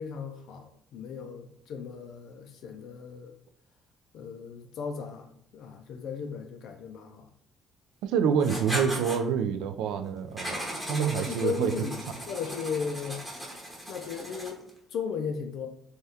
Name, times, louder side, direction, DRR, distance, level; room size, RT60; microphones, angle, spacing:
voice 1, 0.0-3.3 4.1-7.3 10.8-12.0 12.3-13.2 13.9-15.7, left 6 dB, 65° left, 4 dB, 0.3 m, -36 dB
voice 2, 8.0-10.6 10.9-11.7, right 7 dB, 90° right, 8 dB, 0.3 m, -27 dB
Writing, 8.4-9.2 10.4-14.7, equal, ahead, 0.8 m, -37 dB
3.4 x 2.2 x 2.7 m, 0.70 s
cardioid pair, 145°, 0 cm